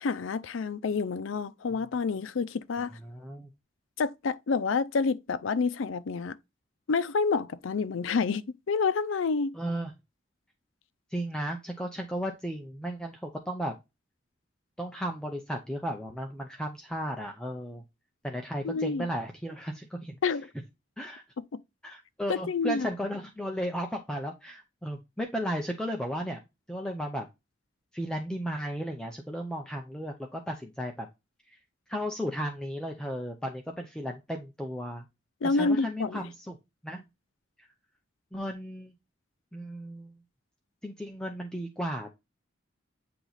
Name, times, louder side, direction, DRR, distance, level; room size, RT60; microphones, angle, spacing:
voice 1, 0.0-2.9 4.0-6.3 6.9-9.5 18.6-19.1 20.2-20.5 22.3-22.9 35.4-36.2, left 4 dB, 85° left, 0.5 m, -28 dB
voice 2, 2.8-3.5 9.5-9.9 11.1-13.7 14.8-17.8 18.2-20.2 21.0-21.2 21.8-26.4 26.7-27.3 27.9-31.1 31.5-31.6 31.9-35.1 35.4-36.6 36.8-37.1 37.6-37.7 38.3-38.9 39.5-40.1 40.8-42.1, equal, 5° left, 0.5 m, -35 dB
8.5 x 3.0 x 3.9 m
head